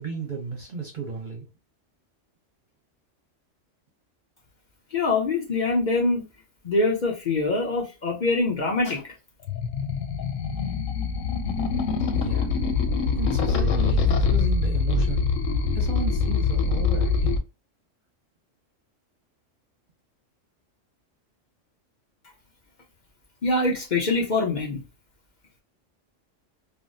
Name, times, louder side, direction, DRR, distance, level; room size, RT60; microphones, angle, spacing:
voice 1, 0.0-1.5 12.1-12.5 13.1-15.3 15.7-17.4, right 5 dB, 50° right, 0.7 m, -34 dB
voice 2, 4.9-6.2 6.6-9.1 23.4-24.8, left 3 dB, 45° left, 0.7 m, -24 dB
sound 1, 9.5-17.4, left 5 dB, 90° left, 0.9 m, -24 dB
3.4 x 2.1 x 2.6 m
omnidirectional pair, 1.3 m